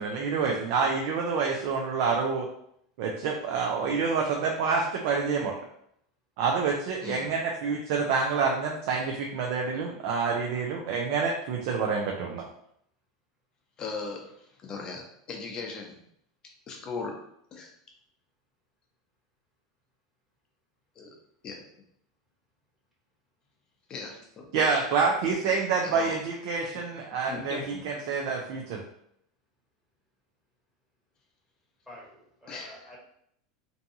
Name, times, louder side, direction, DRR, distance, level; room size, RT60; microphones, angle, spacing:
voice 1, 0.0-2.5 3.0-5.6 6.4-12.5 24.5-27.6 27.8-28.8, right 5 dB, 60° right, 0 dB, 0.4 m, -27 dB
voice 2, 13.8-16.0 16.7-17.2 17.5-17.7 21.0-21.1 21.4-21.7 23.9-24.5 25.8-26.2 27.3-27.8 32.5-32.9, left 4 dB, 35° left, 1 dB, 0.7 m, -38 dB
voice 3, 31.9-33.0, left 1 dB, ahead, -5 dB, 1.1 m, -48 dB
2.6 x 2.3 x 2.7 m, 0.71 s
hypercardioid pair, 105°, 2 cm